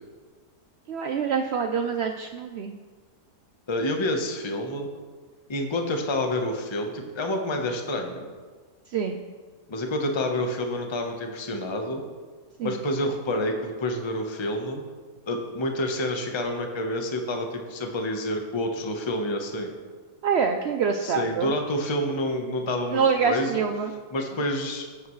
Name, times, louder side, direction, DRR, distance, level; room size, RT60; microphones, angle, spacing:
voice 1, 0.9-2.7 8.9-9.2 12.6-12.8 20.2-21.5 22.9-23.9, right 6 dB, 65° right, 5 dB, 0.6 m, -25 dB
voice 2, 3.7-4.9 5.5-8.2 9.7-12.0 12.6-14.8 15.3-19.7 21.0-24.9, left 1 dB, 20° left, 3 dB, 0.9 m, -28 dB
15.0 x 9.1 x 3.2 m, 1.4 s
omnidirectional pair, 1.7 m